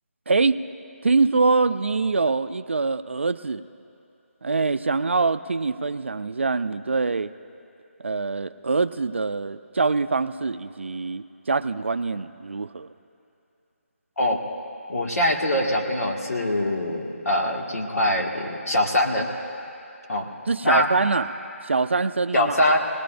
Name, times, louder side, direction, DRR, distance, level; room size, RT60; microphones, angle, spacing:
voice 1, 0.3-0.6 1.0-3.6 4.4-7.3 8.0-12.9 20.5-21.3 21.6-22.6, right 4 dB, 55° right, 13 dB, 0.4 m, -24 dB
voice 2, 14.9-19.3 20.1-20.3 20.6-20.9 22.3-22.8, left 1 dB, 90° left, 0 dB, 1.8 m, -23 dB
19.0 x 18.0 x 2.5 m, 2.6 s
figure-of-eight pair, 180°, 8 cm